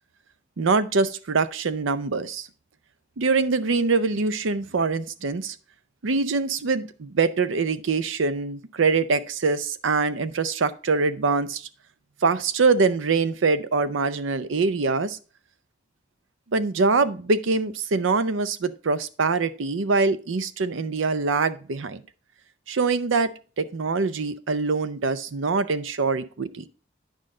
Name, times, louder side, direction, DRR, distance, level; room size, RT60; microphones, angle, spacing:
voice 1, 0.6-2.5 3.2-5.6 6.0-11.7 12.2-15.2 16.5-22.0 22.7-26.6, right 4 dB, 80° right, 13 dB, 0.6 m, -24 dB
9.8 x 5.2 x 3.7 m, 0.37 s
head